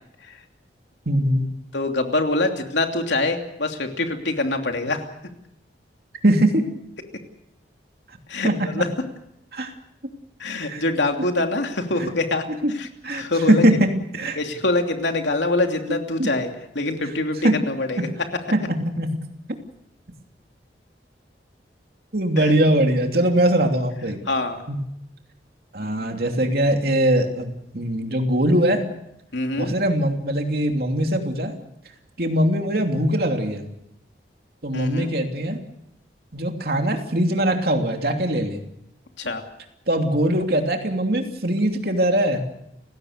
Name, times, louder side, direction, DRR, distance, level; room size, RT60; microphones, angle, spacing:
voice 1, 1.1-1.5 6.2-6.6 8.4-8.8 9.5-9.7 10.6-10.8 12.6-12.7 13.0-14.4 16.2-16.3 17.4-17.6 18.5-19.1 22.1-24.2 24.7-24.8 25.7-28.9 29.6-31.5 32.2-33.7 34.6-35.6 36.3-38.6 39.9-42.4, right 1 dB, 55° right, 4 dB, 2.9 m, -21 dB
voice 2, 1.7-5.0 8.3-8.5 8.7-8.9 10.4-12.4 12.7-12.9 13.1-13.6 14.4-18.1 22.4-22.5 24.3-24.6 29.3-29.8 34.7-35.1 39.2-39.4, left 2 dB, 85° left, 4 dB, 2.9 m, -24 dB
30.0 x 17.0 x 6.6 m, 0.82 s
head